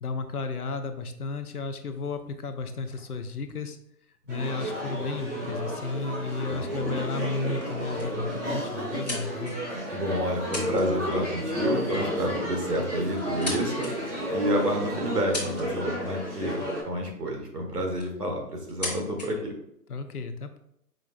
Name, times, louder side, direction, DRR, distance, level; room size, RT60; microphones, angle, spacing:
voice 1, 0.0-3.8 4.3-9.6 19.9-20.6, left 4 dB, 65° left, 7 dB, 0.6 m, -33 dB
sound 1, 1.9-4.5 5.4-5.5 5.8-6.0 6.6-6.9 7.2-7.3 7.6-8.2 8.6-9.8 10.3-10.9 11.1-11.4 12.5-12.6 13.1-13.9 14.5-14.6 15.1-15.9 17.2-17.3 17.8-18.2 18.6-19.3, left 2 dB, 25° left, 0.9 m, -38 dB
sound 2, 4.3-16.8, equal, 45° right, 1.7 m, -32 dB
voice 2, 6.4-7.0 9.9-13.9 14.3-16.6 16.8-19.5, equal, 65° right, 2 dB, 1.5 m, -29 dB
5.0 x 3.8 x 2.5 m, 0.75 s
figure-of-eight pair, 165°, 50 cm